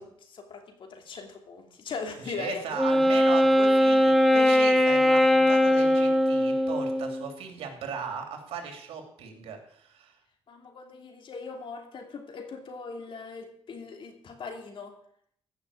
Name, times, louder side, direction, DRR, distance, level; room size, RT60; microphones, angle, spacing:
voice 1, 0.0-2.8 10.5-14.9, left 4 dB, 60° left, 4 dB, 2.7 m, -40 dB
voice 2, 2.2-10.1, right 6 dB, 90° right, 4 dB, 2.9 m, -37 dB
Wind instrument woodwind instrument, 2.8-7.3, equal, ahead, 1.0 m, -21 dB
15.0 x 6.4 x 8.3 m, 0.68 s
cardioid pair, 100°, 10 cm